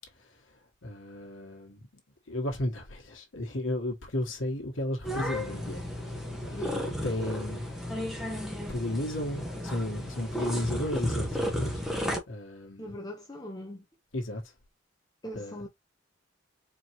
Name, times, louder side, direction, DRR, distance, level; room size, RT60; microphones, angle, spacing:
voice 1, 0.8-1.9 2.3-6.1 6.4-7.6 7.9-8.0 8.7-11.8 12.3-12.9 14.1-14.4 15.3-15.6, left 1 dB, 80° left, 1.3 m, -34 dB
sound 1, 5.0-12.2, equal, ahead, 1.0 m, -33 dB
voice 2, 6.5-6.9 10.4-10.7 12.8-13.8 15.2-15.7, left 1 dB, 20° left, 0.7 m, -41 dB
4.4 x 2.9 x 3.0 m
head